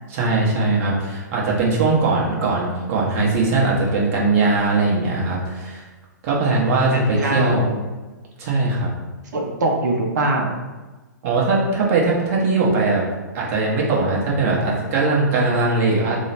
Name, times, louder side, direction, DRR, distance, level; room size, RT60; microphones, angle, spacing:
voice 1, 0.1-5.8 6.2-7.6 8.4-8.9 11.2-13.0 13.3-16.2, right 3 dB, 45° right, -3 dB, 1.0 m, -20 dB
voice 2, 6.9-7.8 9.3-10.6, right 2 dB, 65° right, 1 dB, 0.6 m, -22 dB
3.0 x 2.1 x 4.1 m, 1.2 s
hypercardioid pair, 120°, 10 cm